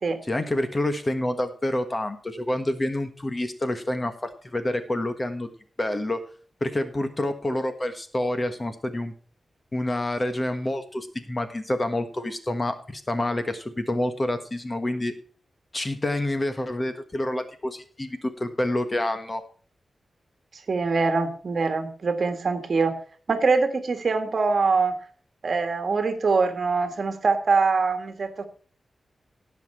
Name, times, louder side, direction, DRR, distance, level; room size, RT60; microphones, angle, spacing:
voice 1, 0.3-5.5 5.8-6.3 6.6-9.1 9.7-15.1 15.7-19.4, left 1 dB, 25° left, 8 dB, 1.4 m, -28 dB
voice 2, 20.7-22.9 23.3-24.9 25.4-28.4, right 4 dB, 55° right, 7 dB, 1.6 m, -23 dB
17.5 x 5.9 x 4.3 m, 0.42 s
wide cardioid pair, 105°, 0 cm